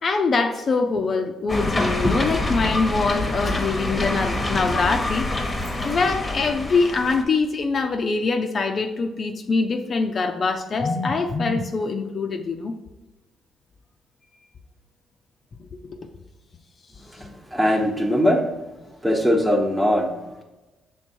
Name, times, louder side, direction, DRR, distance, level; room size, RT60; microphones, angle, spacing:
voice 1, 0.0-5.3 5.8-12.7 15.9-16.0, left 4 dB, 45° left, 5 dB, 0.5 m, -23 dB
sound 1, 1.5-7.2, left 2 dB, 20° left, 1.0 m, -26 dB
voice 2, 17.1-18.5 19.0-20.4, equal, 10° right, 1 dB, 1.1 m, -21 dB
6.1 x 3.5 x 4.4 m, 1.1 s
cardioid pair, 90°, 0 cm